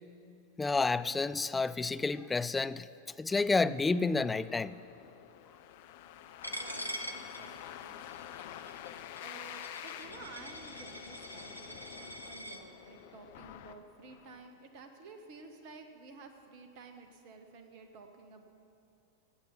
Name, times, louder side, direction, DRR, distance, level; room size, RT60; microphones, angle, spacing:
voice 1, 0.6-2.9 3.2-4.7, left 3 dB, 10° left, 14 dB, 0.4 m, -30 dB
sound 1, 3.3-14.5, left 11 dB, 50° left, 0.6 m, -48 dB
Coin (dropping), 6.4-12.6, equal, 90° left, 0.9 m, -44 dB
voice 2, 6.5-8.3 9.2-18.4, right 4 dB, 45° right, 6 dB, 1.6 m, -52 dB
16.5 x 8.8 x 7.2 m, 2.6 s
figure-of-eight pair, 90°, 0 cm